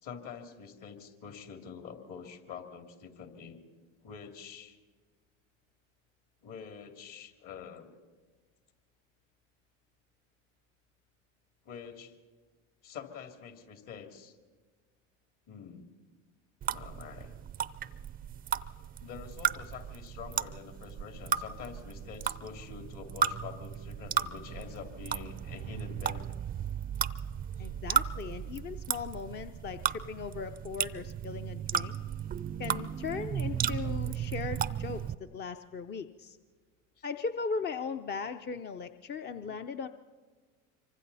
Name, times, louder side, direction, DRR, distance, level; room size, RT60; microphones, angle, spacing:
voice 1, 0.0-3.6 4.0-4.8 6.4-8.0 11.6-12.2 12.8-14.4 15.5-15.9 16.7-17.4 19.0-26.4 27.6-27.7 28.4-28.6 37.0-37.1 39.5-39.6, left 7 dB, 55° left, 5 dB, 3.0 m, -46 dB
sound 1, 16.6-35.1, right 8 dB, 25° right, 0.5 m, -35 dB
voice 2, 27.6-31.9 32.6-35.0 35.3-36.4 37.0-39.9, left 5 dB, 25° left, 8 dB, 0.7 m, -38 dB
26.0 x 24.5 x 4.2 m, 1.5 s
hypercardioid pair, 95°, 38 cm